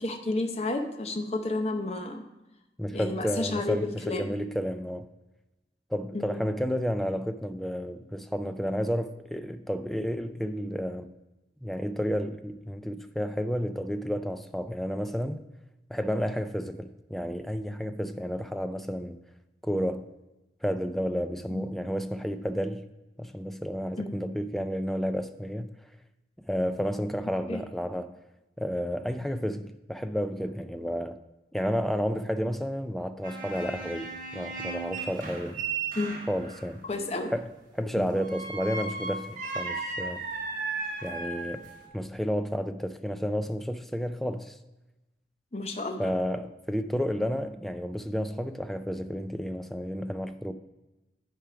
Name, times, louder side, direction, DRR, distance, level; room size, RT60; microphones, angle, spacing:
voice 1, 0.0-2.2 2.9-4.3 6.1-6.4 21.5-21.7 24.0-24.2 27.5-27.6 36.0-36.2 36.9-37.3 38.0-38.2 45.5-46.1, left 2 dB, 35° left, 0.7 m, -31 dB
voice 2, 2.8-5.1 5.9-11.1 11.6-15.5 15.9-19.2 19.6-20.0 20.6-22.8 23.2-25.7 26.5-28.1 28.6-31.2 31.5-35.6 36.3-36.8 37.3-37.5 37.7-40.2 41.0-41.7 41.9-44.6 46.0-50.5, equal, ahead, 0.3 m, -31 dB
sound 1, 33.2-36.7 38.1-41.9, right 4 dB, 50° right, 1.4 m, -35 dB
9.0 x 4.7 x 4.7 m
head